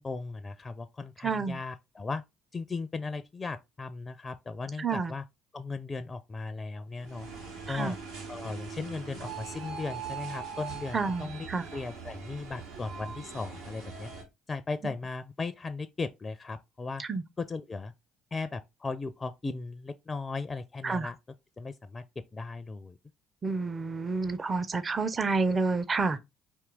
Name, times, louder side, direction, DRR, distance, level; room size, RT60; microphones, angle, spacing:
voice 1, 0.0-2.2 2.5-5.2 5.5-7.3 7.7-8.0 8.3-14.1 14.5-17.0 17.4-17.9 18.3-21.2 21.6-22.0 22.3-23.0, left 3 dB, 30° left, 0.4 m, -37 dB
voice 2, 1.2-1.6 4.8-5.1 7.7-7.9 10.9-11.6 17.0-17.2 20.8-21.1 23.4-26.2, right 4 dB, 30° right, 0.6 m, -29 dB
sound 1, 7.0-14.2, right 6 dB, 85° right, 1.5 m, -41 dB
4.5 x 2.9 x 3.7 m
hypercardioid pair, 60°, 0 cm